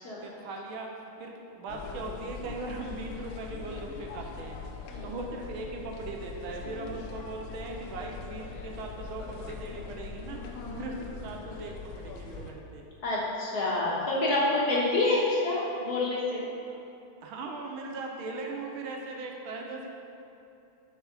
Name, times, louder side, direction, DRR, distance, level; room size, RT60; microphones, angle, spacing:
voice 1, 0.2-0.9 1.2-4.6 5.0-10.4 10.7-12.8 13.9-14.0 16.7-16.8 17.2-19.9, right 3 dB, 75° right, 1 dB, 1.5 m, -39 dB
sound 1, 1.7-12.5, left 5 dB, 75° left, 1.4 m, -42 dB
voice 2, 10.3-10.8 13.0-16.4, left 2 dB, 50° left, -6 dB, 1.6 m, -28 dB
6.9 x 4.6 x 5.8 m, 2.8 s
omnidirectional pair, 2.4 m